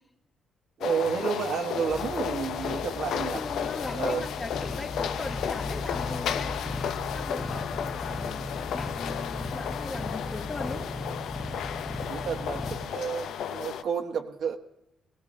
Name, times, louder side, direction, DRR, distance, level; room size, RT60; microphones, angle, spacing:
sound 1, 0.8-13.8, left 8 dB, 75° left, 0.6 m, -33 dB
voice 1, 0.8-3.4 3.9-4.2 12.1-14.6, right 7 dB, 65° right, 3 dB, 1.3 m, -31 dB
sound 2, 1.9-12.8, left 2 dB, 10° left, 1.0 m, -37 dB
voice 2, 3.3-6.7 7.1-10.9, left 2 dB, 30° left, 0 dB, 2.3 m, -39 dB
22.5 x 17.0 x 2.7 m, 0.89 s
cardioid pair, 90°, 0 cm